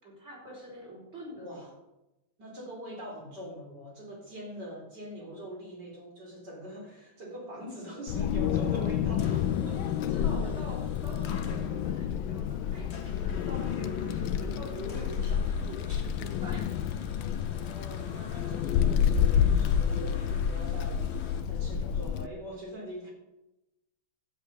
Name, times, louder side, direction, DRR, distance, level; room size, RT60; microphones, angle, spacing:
voice 1, 0.0-1.7 9.9-16.7, equal, 30° right, -2 dB, 5.1 m, -44 dB
voice 2, 1.4-1.7 2.4-10.2 14.3-14.6 17.6-21.1 21.4-23.1, equal, 50° right, -1 dB, 4.5 m, -43 dB
Wind, 8.1-22.3, left 9 dB, 75° left, 1.3 m, -29 dB
sound 1, 8.6-21.4, left 4 dB, 40° left, 1.1 m, -45 dB
11.5 x 9.1 x 6.7 m, 0.95 s
omnidirectional pair, 2.3 m